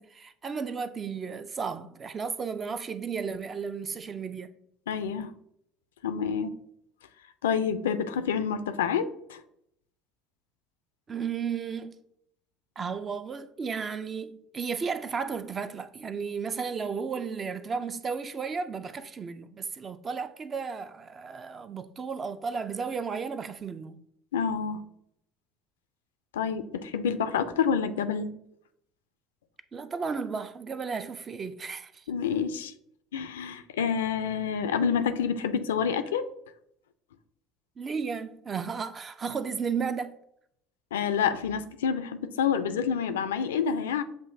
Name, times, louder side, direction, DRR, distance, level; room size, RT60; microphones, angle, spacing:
voice 1, 0.0-4.5 11.1-12.0 12.8-24.0 29.7-32.0 37.8-40.2, right 5 dB, 30° right, 0.4 m, -34 dB
voice 2, 4.9-5.3 6.0-6.5 7.4-9.4 24.3-24.8 26.3-28.3 32.1-32.7 33.1-36.3 40.9-44.0, left 7 dB, 75° left, 0.3 m, -28 dB
7.4 x 2.5 x 2.6 m
figure-of-eight pair, 65°, 0 cm